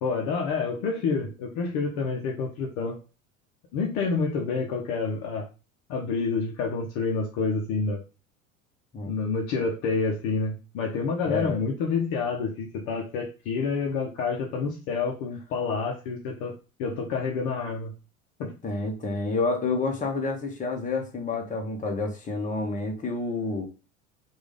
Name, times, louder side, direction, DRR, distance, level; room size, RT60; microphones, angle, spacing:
voice 1, 0.0-3.0 3.7-5.5 5.9-8.0 9.0-16.5 16.8-17.9 18.4-18.5, left 4 dB, 45° left, 1 dB, 1.0 m, -28 dB
voice 2, 11.2-11.6 18.6-23.7, left 3 dB, 20° left, 2 dB, 1.3 m, -29 dB
4.9 x 2.7 x 3.5 m, 0.32 s
figure-of-eight pair, 70°, 41 cm